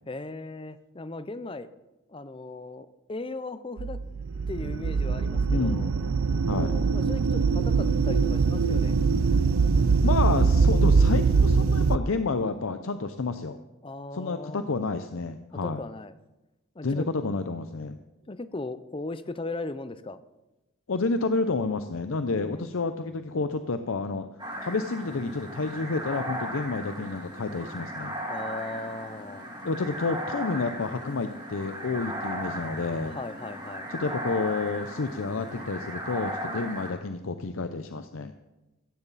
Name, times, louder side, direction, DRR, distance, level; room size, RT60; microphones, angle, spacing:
voice 1, 0.1-1.7 2.1-4.0 4.5-5.9 6.5-9.0 13.8-14.7 15.6-16.1 16.8-17.1 18.3-20.2 22.3-22.7 28.3-29.5 33.1-33.9 36.6-36.7, left 2 dB, 25° left, 13 dB, 0.6 m, -38 dB
sound 1, 3.8-12.0, right 4 dB, 85° right, 0.5 m, -23 dB
voice 2, 5.5-5.8 6.5-6.7 10.0-13.6 14.1-15.8 16.8-18.0 20.9-24.3 24.6-28.2 29.6-33.2 33.9-38.3, left 3 dB, 75° left, 9 dB, 0.6 m, -30 dB
sound 2, 24.4-36.9, equal, 20° right, 5.1 m, -37 dB
15.5 x 14.5 x 4.1 m, 1.0 s
head